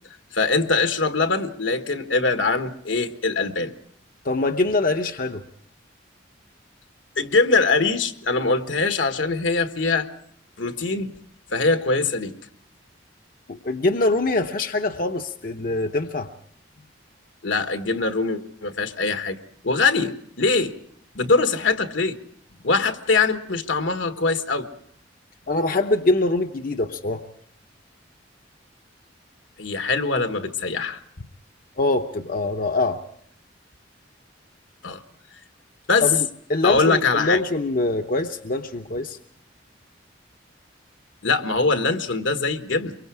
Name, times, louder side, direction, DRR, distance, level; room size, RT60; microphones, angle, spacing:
voice 1, 0.3-3.7 7.2-10.1 10.6-11.1 11.5-12.3 17.4-19.4 19.6-20.7 21.1-22.2 22.6-24.7 29.6-31.0 34.8-35.0 35.9-36.1 36.6-37.4 41.2-42.9, left 3 dB, 75° left, 8 dB, 1.4 m, -22 dB
voice 2, 4.2-5.4 13.5-16.3 25.5-27.2 31.8-33.0 36.0-39.2, left 2 dB, 45° left, 5 dB, 0.8 m, -23 dB
24.0 x 23.5 x 4.7 m, 0.64 s
head